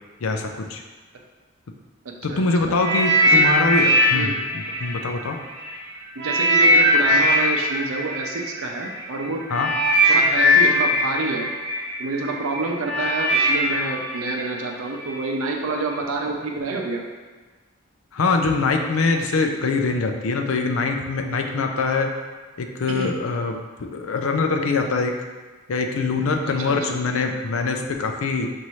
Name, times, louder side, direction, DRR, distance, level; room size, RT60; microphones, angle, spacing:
voice 1, 0.2-0.8 2.2-5.4 9.5-9.7 18.1-22.1 22.6-25.2 25.7-28.5, left 3 dB, 90° left, 4 dB, 0.5 m, -23 dB
voice 2, 2.3-2.7 3.3-3.5 4.1-4.4 6.2-9.5 10.1-11.5 12.0-17.0 22.9-23.2 26.6-26.9, right 3 dB, 90° right, 1 dB, 0.6 m, -28 dB
sound 1, 2.8-5.7 6.2-15.2 15.9-16.0, equal, 50° right, 0.7 m, -20 dB
5.4 x 2.6 x 3.1 m, 1.3 s
head